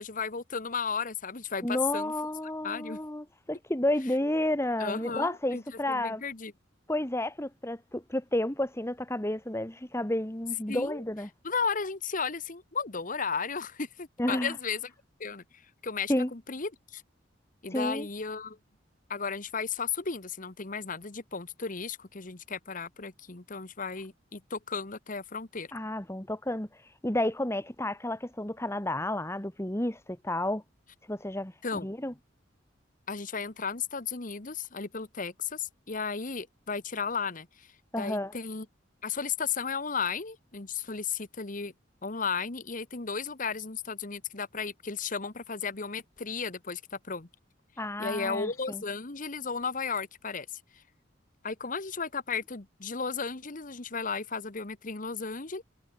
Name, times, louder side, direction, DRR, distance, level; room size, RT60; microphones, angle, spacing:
voice 1, 0.0-2.1 2.6-3.0 4.8-5.6 5.9-6.5 10.7-11.0 11.4-14.9 15.2-17.0 17.6-18.6 19.1-25.7 31.6-31.9 33.1-37.7 38.0-38.7 39.0-41.7 42.0-47.3 48.0-50.6 51.4-55.6, left 5 dB, 45° left, 1.4 m, -34 dB
voice 2, 1.6-6.2 6.9-11.3 14.2-14.5 16.1-16.3 17.7-18.1 25.7-30.6 31.1-32.1 37.9-38.4 47.8-48.8, left 1 dB, 15° left, 2.1 m, -31 dB
head